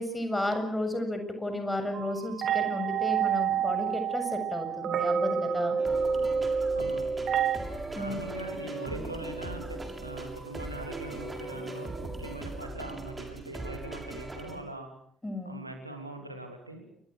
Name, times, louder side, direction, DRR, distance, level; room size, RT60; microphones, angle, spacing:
voice 1, 0.0-5.8 7.9-8.2 15.2-15.6, left 1 dB, 10° left, 7 dB, 7.6 m, -33 dB
sound 1, 1.9-7.6, right 7 dB, 50° right, 2.4 m, -28 dB
sound 2, 5.8-14.6, right 2 dB, 20° right, 7.2 m, -39 dB
voice 2, 6.7-7.2 7.9-14.9 15.4-16.8, right 2 dB, 90° right, 5 dB, 3.1 m, -42 dB
29.0 x 23.0 x 6.5 m, 0.64 s
figure-of-eight pair, 45°, 0 cm